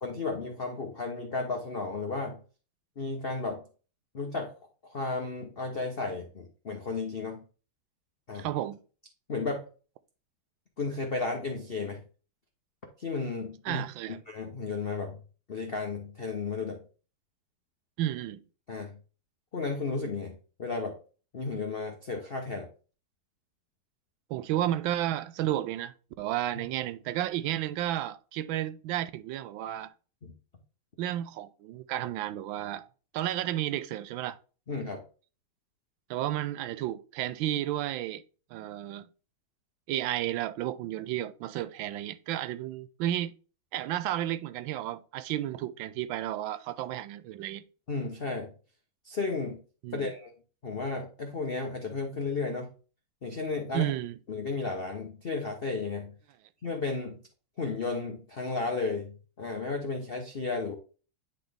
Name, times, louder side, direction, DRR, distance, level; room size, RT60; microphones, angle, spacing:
voice 1, 0.0-2.4 3.0-3.6 4.1-4.5 4.8-7.4 8.3-8.5 9.3-9.7 10.8-12.0 13.0-13.8 14.3-15.2 15.5-16.8 18.7-18.9 19.5-21.0 21.3-22.7 30.2-30.3 34.7-35.0 47.9-48.5 49.0-49.6 49.9-50.3 50.6-52.7 53.2-53.9 54.3-56.1 56.6-57.1 57.6-60.7, left 3 dB, 45° left, 0.7 m, -33 dB
voice 2, 8.3-8.8 13.6-14.2 18.0-18.4 24.3-29.9 31.0-32.9 33.1-34.4 36.1-38.2 38.5-39.0 39.9-43.3 43.7-47.6 49.8-50.1 53.7-54.1, right 13 dB, 75° right, 1.3 m, -32 dB
9.9 x 4.1 x 3.4 m
omnidirectional pair, 2.3 m